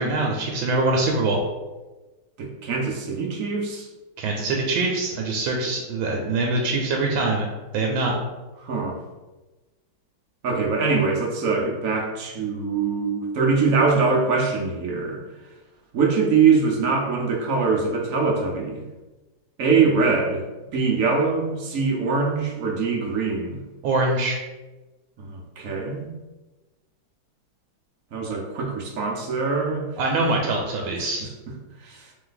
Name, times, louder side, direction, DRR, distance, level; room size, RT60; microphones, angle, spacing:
voice 1, 0.0-1.4 4.2-7.5 7.7-8.1 23.8-24.4 30.0-31.3, right 2 dB, 80° right, 0 dB, 1.3 m, -23 dB
voice 2, 2.4-3.9 8.6-9.0 10.4-15.2 15.9-18.8 19.6-20.4 20.7-23.6 25.2-26.2 28.1-29.9 31.8-32.1, right 4 dB, 65° right, -1 dB, 0.8 m, -23 dB
3.2 x 3.2 x 3.9 m, 1.2 s
omnidirectional pair, 2.1 m